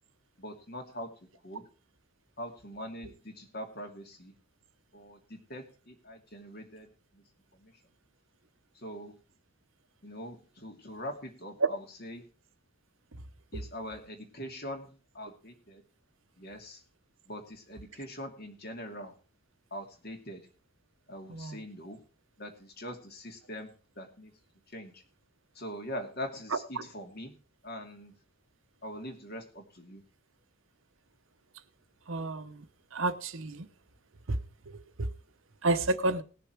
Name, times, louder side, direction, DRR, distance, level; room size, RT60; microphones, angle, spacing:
voice 1, 0.4-1.1 1.4-1.7 2.4-4.3 4.9-7.2 7.5-7.7 8.7-9.2 10.0-12.3 13.5-15.8 16.4-16.8 17.3-19.1 19.7-20.4 21.1-22.0 22.4-24.3 24.7-25.0 25.5-27.3 27.6-28.1 28.8-30.0, equal, 45° left, 2.5 m, -43 dB
voice 2, 32.1-32.5 32.9-33.7 35.6-36.2, right 2 dB, 65° right, 0.9 m, -30 dB
19.0 x 6.8 x 4.6 m
head